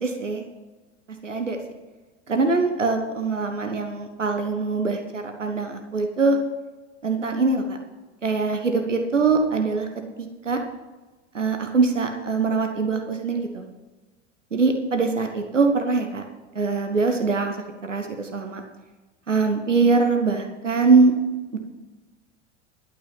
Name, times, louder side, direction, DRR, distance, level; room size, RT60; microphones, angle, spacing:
voice 1, 0.0-0.4 1.2-1.6 2.3-6.4 7.0-7.8 8.2-9.9 10.2-10.6 11.3-13.7 14.5-16.2 16.5-17.6 17.8-18.6 19.3-21.2 21.5-21.6, right 4 dB, 80° right, 4 dB, 1.3 m, -22 dB
12.0 x 8.6 x 5.7 m, 1.2 s
figure-of-eight pair, 80°, 36 cm